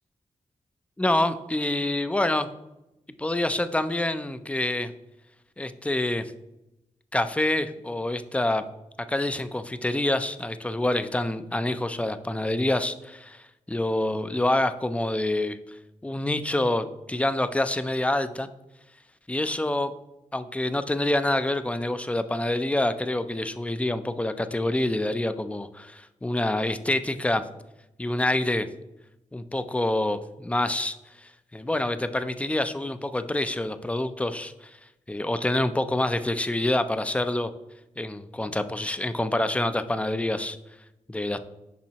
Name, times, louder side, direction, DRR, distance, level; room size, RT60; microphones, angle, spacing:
voice 1, 1.0-2.5 3.2-4.9 5.6-6.3 7.1-8.6 9.1-15.6 16.0-18.5 19.3-19.9 20.3-27.4 28.0-28.7 29.3-31.0 31.2-34.7 35.1-37.5 38.0-40.6 41.1-41.4, left 1 dB, 10° left, 11 dB, 0.4 m, -26 dB
7.2 x 5.2 x 2.9 m, 0.94 s
cardioid pair, 60°, 13 cm